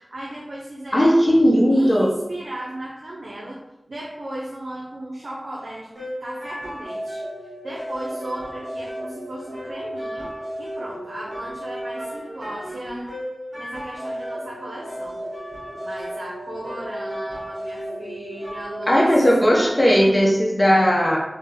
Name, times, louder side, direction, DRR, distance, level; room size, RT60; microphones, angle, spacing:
voice 1, 0.0-3.6 3.9-5.9 6.2-7.2 7.6-10.3 10.6-13.1 13.5-15.2 15.8-19.1 19.4-19.7, right 1 dB, 80° right, -5 dB, 0.5 m, -36 dB
voice 2, 0.9-2.1 18.9-21.2, equal, 30° left, -3 dB, 0.8 m, -17 dB
sound 1, 5.9-20.2, equal, 50° right, 1.5 m, -34 dB
3.3 x 2.2 x 3.4 m, 0.90 s
wide cardioid pair, 60°, 0 cm